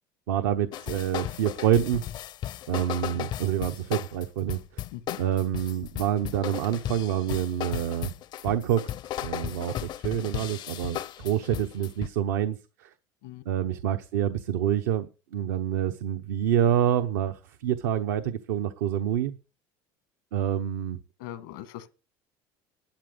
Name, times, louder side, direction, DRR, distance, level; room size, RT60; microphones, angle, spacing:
voice 1, 0.3-2.0 2.7-4.6 5.2-8.1 8.4-8.8 9.2-12.9 13.5-15.1 15.3-19.4 20.3-21.0, right 10 dB, 90° right, 0.9 m, -27 dB
sound 1, 0.7-12.1, left 11 dB, 50° left, 0.5 m, -35 dB
voice 2, 21.2-21.9, left 13 dB, 85° left, 1.7 m, -40 dB
12.0 x 10.5 x 5.1 m
supercardioid pair, 110°, 10 cm